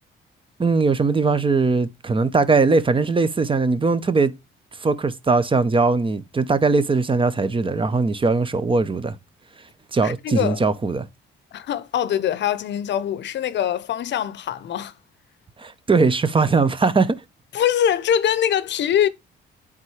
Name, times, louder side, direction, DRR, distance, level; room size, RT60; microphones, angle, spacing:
voice 1, 0.6-4.3 4.8-9.2 9.9-11.1 15.6-17.2, right 4 dB, 25° right, 0.7 m, -20 dB
voice 2, 10.0-10.6 11.5-14.9 17.5-19.1, left 10 dB, 65° left, 0.6 m, -23 dB
8.9 x 3.7 x 3.2 m
cardioid pair, 90°, 20 cm